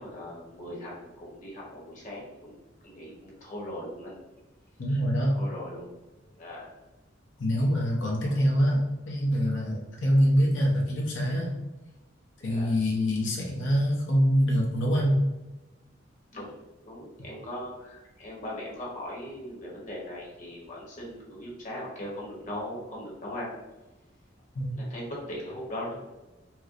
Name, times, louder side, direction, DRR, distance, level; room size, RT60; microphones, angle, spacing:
voice 1, 0.0-2.5 2.8-4.2 5.3-5.9 6.4-6.7 8.2-8.3 12.4-12.7 16.3-23.5 24.7-26.0, left 1 dB, 40° left, -4 dB, 1.1 m, -39 dB
voice 2, 4.8-5.3 7.4-11.6 12.4-15.2 24.5-24.7, equal, 85° left, -3 dB, 0.8 m, -25 dB
4.3 x 2.1 x 2.5 m, 1.1 s
head